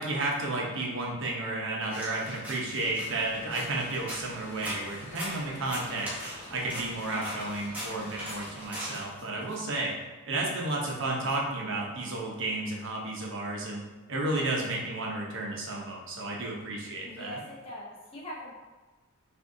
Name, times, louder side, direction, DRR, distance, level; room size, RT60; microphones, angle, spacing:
voice 1, 0.0-6.1 6.5-9.9 10.3-13.8 14.1-17.4, right 2 dB, 60° right, -2 dB, 0.9 m, -32 dB
sound 1, 1.9-9.6, equal, 10° right, 1.0 m, -41 dB
sound 2, 3.1-8.7, left 2 dB, 80° left, 0.7 m, -50 dB
voice 2, 17.0-18.5, left 1 dB, 25° left, -4 dB, 0.6 m, -42 dB
6.1 x 2.6 x 2.7 m, 1.2 s
head